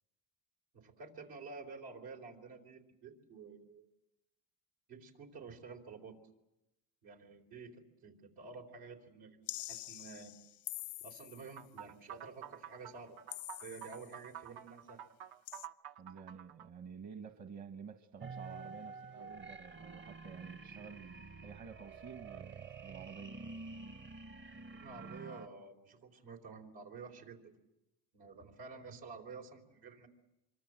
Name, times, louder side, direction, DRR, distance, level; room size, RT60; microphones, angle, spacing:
voice 1, 0.7-3.9 4.9-6.2 7.0-10.3 11.0-13.2 13.6-15.0 24.7-27.5 28.1-30.1, right 4 dB, 85° right, 2 dB, 4.1 m, -50 dB
sound 1, 9.5-11.6 13.3-14.2 15.5-15.7, left 17 dB, 90° left, 0.8 m, -45 dB
sound 2, 11.6-16.7, right 10 dB, 65° right, 0.9 m, -49 dB
voice 2, 16.0-23.3, right 6 dB, 45° right, 7 dB, 1.4 m, -50 dB
sound 3, 18.2-25.5, right 4 dB, 30° right, 0.8 m, -49 dB
26.0 x 23.5 x 7.7 m, 0.94 s
cardioid pair, 105°, 39 cm